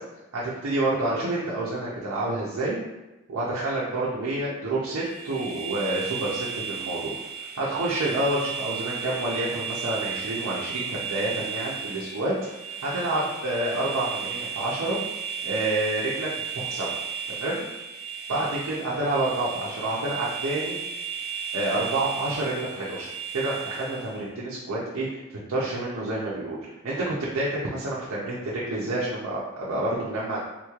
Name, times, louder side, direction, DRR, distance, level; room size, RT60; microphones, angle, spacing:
voice 1, 0.3-2.8 3.3-7.1 7.4-15.0 15.4-16.3 16.5-16.9 17.3-17.6 18.3-20.8 21.5-30.4, right 2 dB, 80° right, -6 dB, 0.6 m, -28 dB
sound 1, 4.9-24.2, right 6 dB, 5° left, 1.1 m, -34 dB
3.6 x 3.0 x 2.3 m, 1.0 s
head